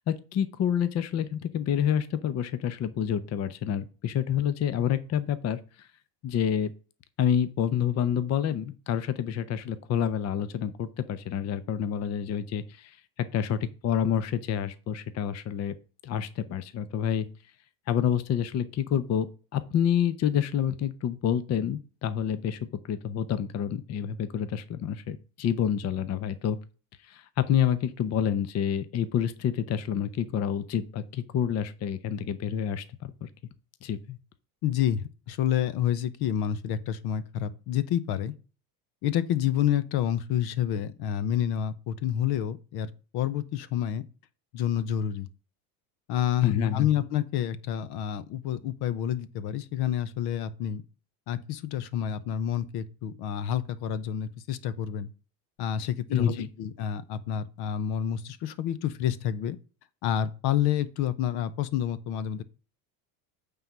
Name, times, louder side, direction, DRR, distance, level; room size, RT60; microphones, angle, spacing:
voice 1, 0.1-5.9 6.2-6.7 7.2-15.7 16.0-17.3 17.9-19.3 19.5-22.6 22.9-26.6 27.0-33.3 33.8-34.2 46.4-46.9 56.1-56.5, left 9 dB, 35° left, 0.7 m, -28 dB
voice 2, 34.6-35.0 35.3-38.3 39.0-44.0 44.5-45.3 46.1-50.8 51.3-55.1 55.6-59.6 60.0-62.4, left 10 dB, 55° left, 0.9 m, -29 dB
9.0 x 3.9 x 5.5 m
supercardioid pair, 110°, 47 cm